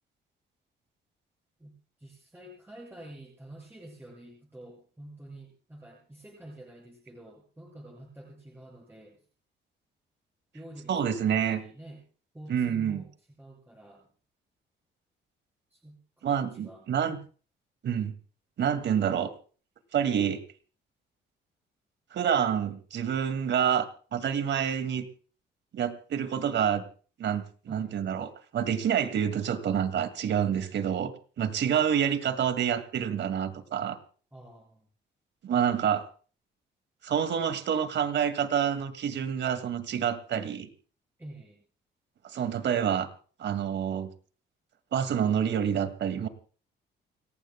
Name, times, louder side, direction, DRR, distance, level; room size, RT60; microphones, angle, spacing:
voice 1, 1.6-9.3 10.5-12.0 12.3-14.1 15.7-17.2 27.7-28.0 34.3-34.9 41.2-41.6, right 1 dB, 10° right, -1 dB, 7.2 m, -48 dB
voice 2, 10.9-11.6 12.5-13.0 16.2-17.2 17.8-18.2 18.6-19.3 19.9-20.4 22.1-23.9 24.1-25.0 25.7-26.8 27.2-34.0 35.4-36.1 37.0-40.7 42.2-43.1 43.4-44.1 44.9-46.3, right 8 dB, 65° right, 11 dB, 2.2 m, -28 dB
29.5 x 15.5 x 2.3 m, 0.40 s
cardioid pair, 90°, 20 cm